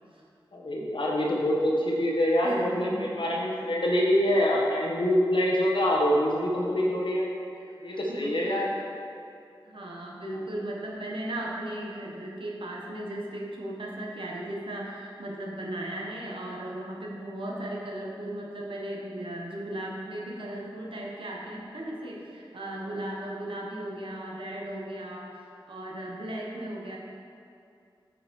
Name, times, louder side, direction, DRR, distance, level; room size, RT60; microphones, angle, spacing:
voice 1, 0.5-7.3 7.8-8.7, equal, 65° left, -3 dB, 1.3 m, -25 dB
voice 2, 2.4-3.2 4.2-4.5 7.5-8.7 9.6-27.0, right 1 dB, 70° right, -2 dB, 1.2 m, -37 dB
7.0 x 5.3 x 4.6 m, 2.5 s
cardioid pair, 45°, 9 cm